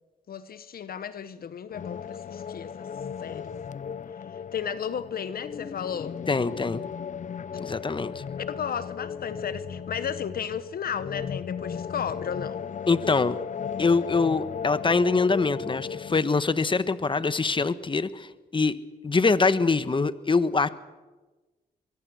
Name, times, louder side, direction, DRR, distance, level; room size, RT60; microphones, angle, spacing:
voice 1, 0.3-2.9 3.2-3.5 4.5-6.2 8.5-12.6 17.1-17.2, left 8 dB, 65° left, 1.2 m, -34 dB
sound 1, 1.7-16.2, left 7 dB, 50° left, 0.7 m, -36 dB
voice 2, 6.3-6.8 7.6-8.2 12.9-13.4 13.8-18.8 19.0-20.7, left 4 dB, 30° left, 1.3 m, -24 dB
23.5 x 23.0 x 6.4 m
supercardioid pair, 55°, 17 cm